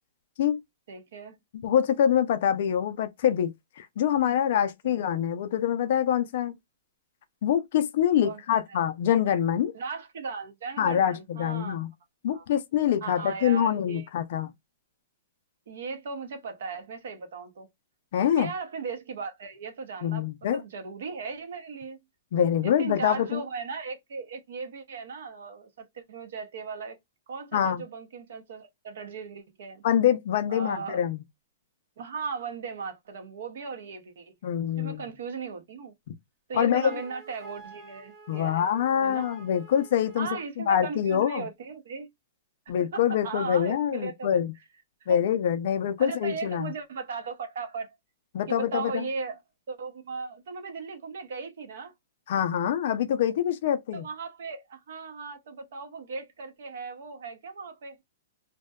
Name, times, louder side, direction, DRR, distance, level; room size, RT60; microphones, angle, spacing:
voice 1, 0.9-1.4 4.8-5.1 8.2-8.8 9.7-11.8 12.3-12.5 13.0-14.1 15.7-17.7 18.2-22.0 22.6-27.0 27.3-29.8 30.5-31.0 32.0-34.3 34.8-35.9 36.5-38.7 39.0-39.3 40.2-42.1 42.7-44.4 45.0-45.2 46.0-48.0 48.5-49.4 49.7-51.9 53.9-58.0, right 5 dB, 60° right, 0.6 m, -37 dB
voice 2, 1.6-3.5 3.8-6.5 7.4-9.7 10.8-11.9 12.2-14.5 18.1-18.5 20.0-20.6 22.3-23.4 27.5-27.8 29.8-31.2 34.4-35.0 36.5-37.0 38.3-40.3 40.6-41.5 42.7-44.5 45.1-46.7 48.3-49.0 52.3-54.0, left 9 dB, 45° left, 0.3 m, -25 dB
Wind instrument woodwind instrument, 36.8-40.5, right 3 dB, 20° right, 0.7 m, -49 dB
2.6 x 2.1 x 2.2 m
hypercardioid pair, 175°, 0 cm